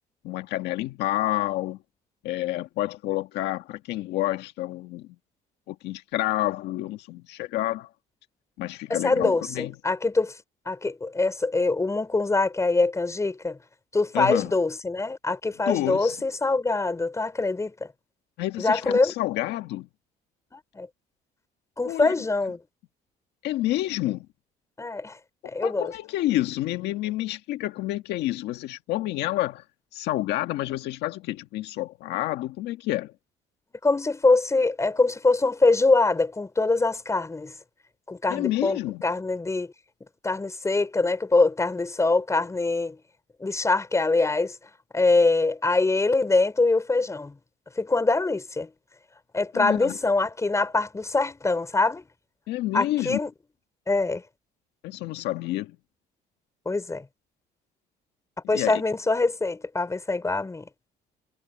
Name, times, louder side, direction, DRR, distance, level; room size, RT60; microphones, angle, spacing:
voice 1, 0.2-1.8 2.2-5.1 5.7-7.9 8.6-9.7 14.1-14.5 15.7-16.2 18.4-19.9 21.8-22.1 23.4-24.3 25.6-29.6 29.9-33.1 38.3-39.0 49.5-49.9 52.5-53.2 54.8-55.8 58.5-58.8, left 15 dB, 85° left, 1.6 m, -29 dB
voice 2, 8.9-10.3 10.7-13.6 13.9-17.9 18.6-19.1 20.5-20.9 21.8-22.6 24.8-25.2 25.4-25.9 33.8-37.5 38.1-39.7 40.2-43.0 43.4-44.6 44.9-47.4 47.8-48.7 49.3-52.0 52.7-53.3 53.9-54.2 56.6-57.0 58.5-60.7, left 3 dB, 15° left, 4.7 m, -24 dB
cardioid pair, 110°, 17 cm